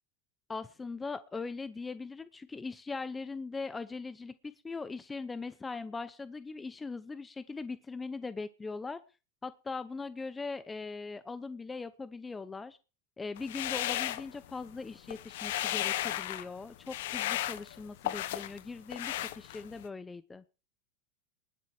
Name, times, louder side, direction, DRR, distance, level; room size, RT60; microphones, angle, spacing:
voice 1, 0.5-9.0 9.4-12.8 13.2-20.4, left 4 dB, 15° left, 13 dB, 0.8 m, -40 dB
sound 1, 13.4-14.7 15.0-16.5 16.9-18.6 18.9-19.8, left 14 dB, 75° left, 1.1 m, -34 dB
20.0 x 7.4 x 4.9 m, 0.33 s
supercardioid pair, 120°, 0 cm